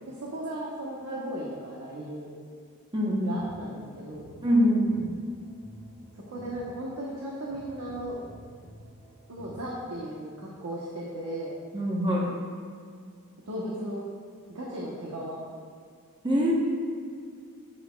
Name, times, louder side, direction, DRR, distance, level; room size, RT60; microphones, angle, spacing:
voice 1, 0.0-2.3 3.3-4.2 6.3-8.2 9.3-11.5 13.5-14.0 14.5-15.4, right 1 dB, 80° right, -4 dB, 1.1 m, -36 dB
voice 2, 2.9-3.4 4.4-5.1 11.7-12.3 16.2-16.5, equal, 20° right, -4 dB, 1.0 m, -24 dB
sound 1, 3.4-10.2, equal, 20° left, 1.5 m, -50 dB
10.0 x 7.7 x 2.4 m, 2.1 s
head